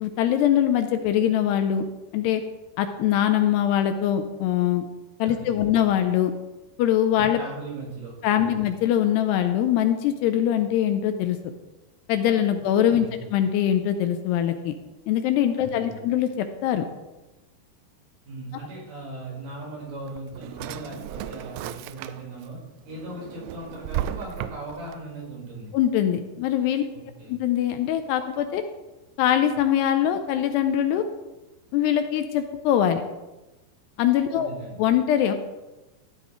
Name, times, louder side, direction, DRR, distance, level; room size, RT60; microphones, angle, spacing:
voice 1, 0.0-1.8 2.1-2.4 2.8-4.9 5.2-6.3 6.8-7.4 8.2-11.4 12.1-14.7 15.1-16.8 25.7-26.9 27.3-28.6 29.2-31.0 31.7-33.0 34.0-34.5 34.8-35.3, left 10 dB, 80° left, 7 dB, 2.7 m, -22 dB
voice 2, 5.3-5.7 7.1-8.6 12.9-13.2 15.6-16.0 18.2-22.6 22.8-25.7 26.9-27.4 34.3-34.8, right 2 dB, 55° right, -4 dB, 6.4 m, -39 dB
Drawer open or close, 19.9-22.5 22.9-24.9, right 12 dB, 85° right, 2.6 m, -34 dB
15.5 x 12.0 x 3.2 m, 1.1 s
omnidirectional pair, 5.0 m